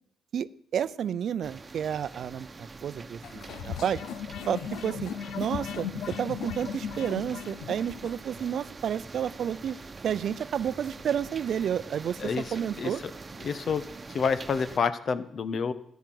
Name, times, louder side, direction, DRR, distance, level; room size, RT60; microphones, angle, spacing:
voice 1, 0.3-4.0 4.5-5.1 5.4-9.8 10.0-13.0, right 8 dB, 65° right, 17 dB, 0.6 m, -31 dB
sound 1, 1.4-14.8, right 3 dB, 35° right, 1.1 m, -44 dB
sound 2, 3.2-8.2, left 8 dB, 80° left, 0.7 m, -37 dB
voice 2, 13.4-13.8 14.1-15.7, left 5 dB, 55° left, 12 dB, 1.3 m, -28 dB
13.5 x 10.5 x 7.8 m, 0.71 s
cardioid pair, 70°, 0 cm